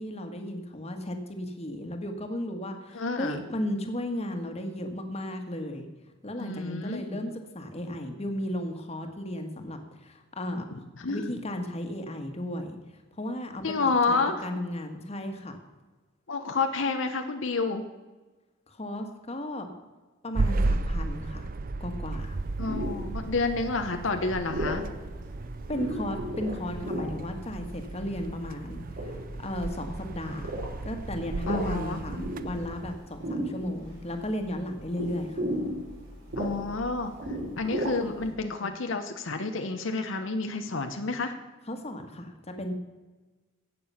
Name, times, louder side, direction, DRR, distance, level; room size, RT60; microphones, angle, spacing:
voice 1, 0.0-5.9 6.2-10.6 11.1-12.8 13.2-13.6 14.1-15.6 18.7-19.7 20.2-21.5 21.8-22.4 25.7-30.5 30.8-35.4 41.7-42.7, left 1 dB, 35° left, 5 dB, 1.6 m, -35 dB
voice 2, 2.9-3.4 6.4-7.3 11.0-11.3 13.6-14.4 16.3-17.8 22.6-24.9 31.5-32.0 36.4-37.1 37.6-41.3, left 3 dB, 75° left, 6 dB, 0.9 m, -29 dB
sound 1, 20.3-33.0, right 2 dB, 45° right, 0.6 m, -34 dB
sound 2, 22.2-38.3, equal, 70° right, 4.9 m, -37 dB
16.5 x 6.9 x 5.7 m, 1.2 s
head